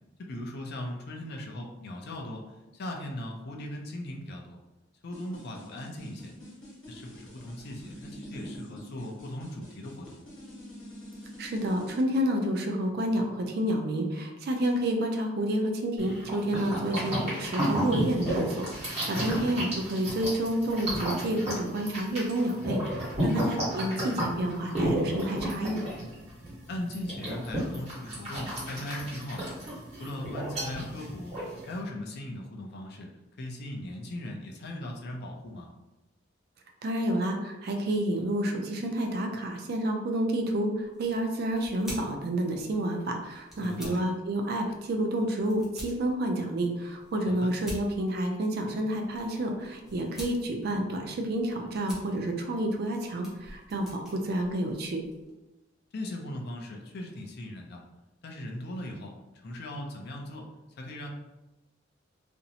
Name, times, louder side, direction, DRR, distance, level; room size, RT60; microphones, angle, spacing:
voice 1, 0.2-4.6 5.0-6.3 6.9-10.2 19.1-19.5 23.2-23.5 26.7-29.6 30.0-31.3 31.6-33.1 33.4-35.7 43.6-44.1 47.3-47.5 55.9-57.8 58.2-59.1 59.4-60.5 60.8-61.1, left 1 dB, 55° left, 1 dB, 0.4 m, -38 dB
sound 1, 5.1-12.0, equal, 75° left, 0.9 m, -46 dB
voice 2, 11.4-25.8 36.8-55.0, right 1 dB, 55° right, 3 dB, 0.4 m, -29 dB
sound 2, 16.0-31.8, equal, 35° right, 1.1 m, -32 dB
sound 3, 40.8-55.3, equal, ahead, 0.7 m, -49 dB
2.5 x 2.0 x 2.7 m, 1.0 s
head